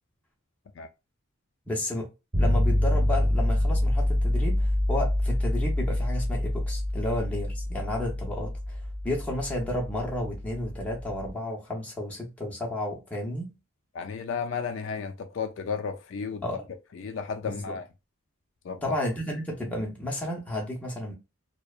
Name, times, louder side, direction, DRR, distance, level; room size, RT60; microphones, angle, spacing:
voice 1, 1.7-2.1 2.4-13.5 16.4-16.6 17.4-17.8 18.8-21.1, left 1 dB, 5° left, 0.6 m, -32 dB
sound 1, 2.3-11.3, left 1 dB, 40° right, 0.8 m, -26 dB
voice 2, 13.9-16.4 16.9-17.8 18.6-19.0, left 5 dB, 60° left, 0.3 m, -33 dB
2.6 x 2.1 x 2.3 m
head